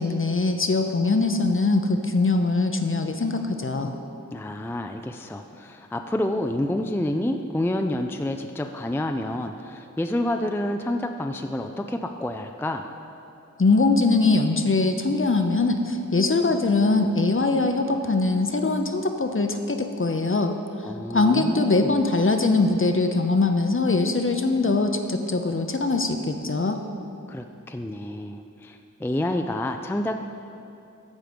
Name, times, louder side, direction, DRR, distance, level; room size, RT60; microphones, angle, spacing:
voice 1, 0.0-3.9 13.6-20.5 21.1-26.8, left 3 dB, 40° left, 6 dB, 0.7 m, -22 dB
voice 2, 4.3-12.8 20.8-21.9 27.3-30.2, left 1 dB, 5° left, 5 dB, 0.4 m, -28 dB
13.5 x 4.8 x 5.1 m, 2.6 s
wide cardioid pair, 45°, 31 cm